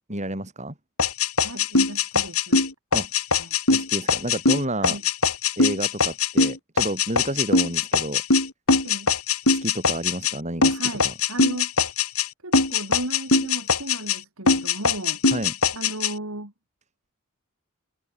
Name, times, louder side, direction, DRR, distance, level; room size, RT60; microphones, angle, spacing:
voice 1, 0.1-0.7 2.9-3.1 3.7-5.0 5.6-8.2 9.5-11.1 15.3-15.5, right 1 dB, 30° right, 7.7 m, -30 dB
sound 1, 1.0-10.4 10.6-12.3 12.5-14.2 14.5-16.1, left 4 dB, 80° left, 5.9 m, -21 dB
voice 2, 1.4-2.7 3.4-3.5 4.8-5.0 8.8-9.1 10.7-11.7 12.4-15.2 15.7-16.5, right 1 dB, 80° right, 4.8 m, -35 dB
head